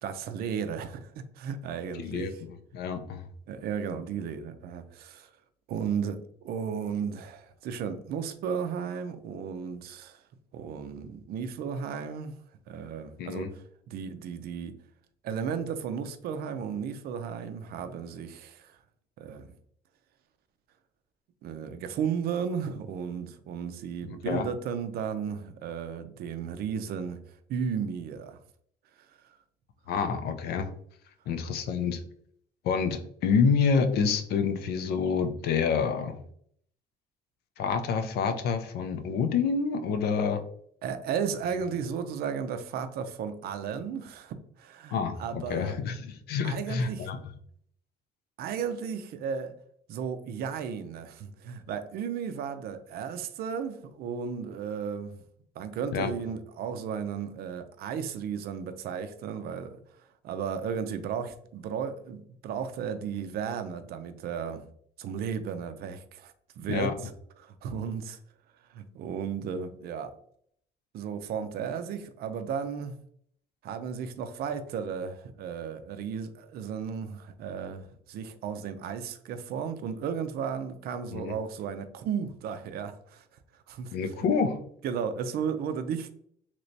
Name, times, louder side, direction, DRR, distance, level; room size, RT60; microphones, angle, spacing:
voice 1, 0.0-2.3 3.5-5.3 5.7-10.2 10.5-12.4 12.7-14.7 15.2-18.8 19.2-19.5 21.4-27.2 27.5-28.4 40.8-45.8 46.4-47.1 48.4-49.5 49.9-55.2 55.6-59.8 60.2-64.6 65.0-67.1 67.4-68.2 68.7-70.1 70.9-73.0 73.6-83.2 83.7-84.0 84.8-86.1, right 7 dB, 65° right, 0.5 m, -34 dB
voice 2, 2.0-3.3 13.2-13.5 24.0-24.4 29.9-30.7 31.3-32.0 32.6-36.1 37.6-40.4 44.9-47.2 55.9-56.1 66.7-66.9 81.1-81.3 83.9-84.6, left 5 dB, 75° left, 0.5 m, -28 dB
3.2 x 2.9 x 2.6 m
cardioid pair, 110°, 17 cm